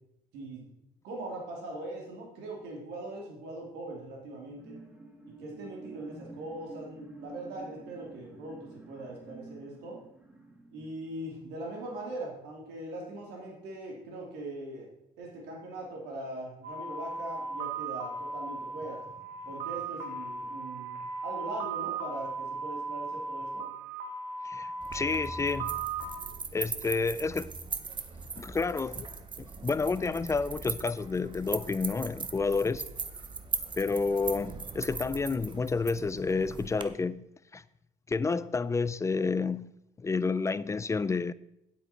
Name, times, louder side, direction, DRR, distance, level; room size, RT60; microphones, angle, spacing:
voice 1, 0.3-0.7 1.0-4.7 5.4-8.6 8.9-10.0 10.7-14.9 15.2-19.0 19.4-23.6, right 2 dB, 90° right, 3.0 m, -41 dB
sound 1, 4.4-12.2 12.6-12.7, right 2 dB, 5° right, 1.6 m, -49 dB
sound 2, 16.6-26.2, right 4 dB, 60° right, 1.7 m, -37 dB
voice 2, 24.4-25.8 26.5-27.5 28.4-29.1 29.4-32.9 33.8-37.2 37.5-37.6 38.1-39.7 40.0-41.3, left 4 dB, 15° left, 0.3 m, -30 dB
sound 3, 24.8-36.8, right 5 dB, 30° right, 0.7 m, -40 dB
9.3 x 8.2 x 4.4 m
cardioid pair, 110°, 17 cm